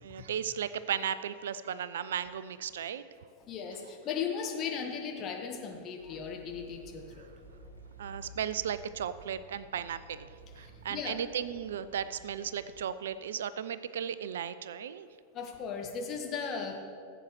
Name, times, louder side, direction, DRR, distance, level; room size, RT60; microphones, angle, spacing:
voice 1, 0.0-3.0 8.0-10.3 10.6-15.1, right 8 dB, 60° right, 15 dB, 0.3 m, -35 dB
voice 2, 3.5-7.3 10.6-11.2 15.3-16.8, left 6 dB, 30° left, 2 dB, 1.4 m, -37 dB
sound 1, 6.0-12.8, right 2 dB, 80° right, 1.2 m, -53 dB
16.0 x 7.9 x 3.1 m, 2.3 s
figure-of-eight pair, 90°, 0 cm